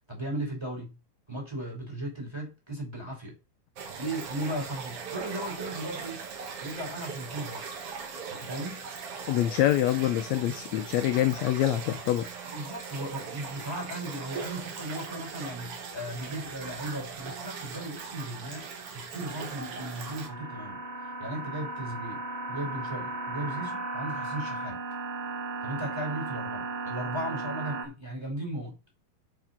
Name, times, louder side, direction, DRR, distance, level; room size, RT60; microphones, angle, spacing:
voice 1, 0.1-1.0 1.3-3.4 4.0-6.2 6.6-7.7 8.3-8.8 12.4-22.2 22.5-24.8 25.6-28.8, right 1 dB, 5° right, 4.3 m, -36 dB
sound 1, 3.8-20.3, right 5 dB, 50° right, 2.2 m, -40 dB
voice 2, 9.3-12.3, left 13 dB, 75° left, 1.7 m, -25 dB
sound 2, 19.2-27.9, right 3 dB, 80° right, 4.0 m, -36 dB
7.1 x 6.5 x 5.8 m
omnidirectional pair, 3.7 m